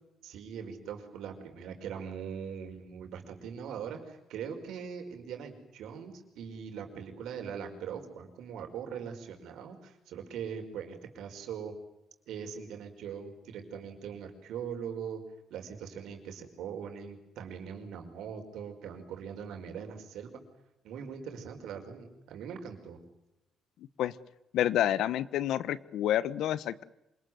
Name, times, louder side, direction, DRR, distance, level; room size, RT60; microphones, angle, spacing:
voice 1, 0.2-11.8 12.3-15.2 15.5-20.4 20.8-23.0, right 7 dB, 80° right, 5 dB, 5.3 m, -41 dB
voice 2, 24.5-26.8, left 12 dB, 80° left, 17 dB, 1.1 m, -29 dB
26.5 x 20.5 x 9.5 m, 0.91 s
cardioid pair, 90°, 0 cm